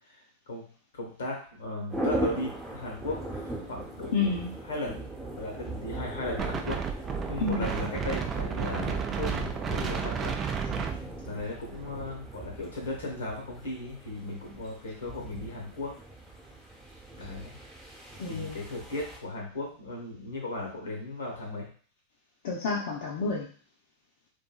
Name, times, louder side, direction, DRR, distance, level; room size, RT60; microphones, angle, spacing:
voice 1, 0.9-3.2 3.6-4.3 4.6-5.0 5.4-6.8 7.3-10.3 10.9-11.0 11.2-15.9 17.1-17.6 18.2-21.7, left 2 dB, 85° left, 0 dB, 1.1 m, -36 dB
sound 1, 1.9-19.2, right 1 dB, 10° right, 0.9 m, -39 dB
voice 2, 4.1-4.5 7.4-7.7 18.2-18.6 22.4-23.5, left 4 dB, 70° left, -4 dB, 0.6 m, -29 dB
Wind, 6.4-11.9, right 7 dB, 30° right, 0.3 m, -32 dB
2.7 x 2.6 x 2.3 m, 0.43 s
hypercardioid pair, 110°, 0 cm